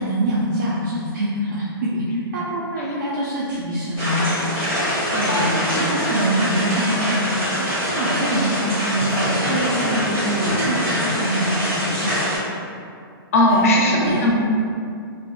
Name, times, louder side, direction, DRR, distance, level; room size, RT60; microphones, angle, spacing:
voice 1, 0.0-4.3 5.1-12.1 13.5-13.7 14.0-14.2, right 1 dB, 50° right, -7 dB, 0.4 m, -24 dB
sound 1, 4.0-12.4, equal, 15° right, 1.1 m, -24 dB
voice 2, 5.2-6.0 10.4-10.7 13.3-14.3, left 1 dB, 35° left, -3 dB, 0.4 m, -19 dB
2.5 x 2.2 x 2.3 m, 2.4 s
hypercardioid pair, 165°, 13 cm